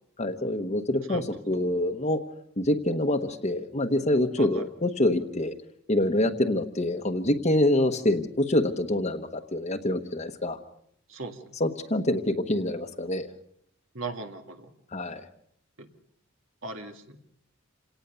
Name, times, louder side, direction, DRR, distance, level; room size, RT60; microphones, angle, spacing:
voice 1, 0.2-2.2 2.6-5.5 5.9-10.6 11.6-13.3 14.9-15.3, left 1 dB, 35° left, 3 dB, 1.2 m, -26 dB
voice 2, 11.1-11.4 13.9-14.7 15.8-15.9 16.6-17.2, right 3 dB, 75° right, 5 dB, 2.1 m, -38 dB
28.0 x 18.5 x 7.0 m, 0.70 s
head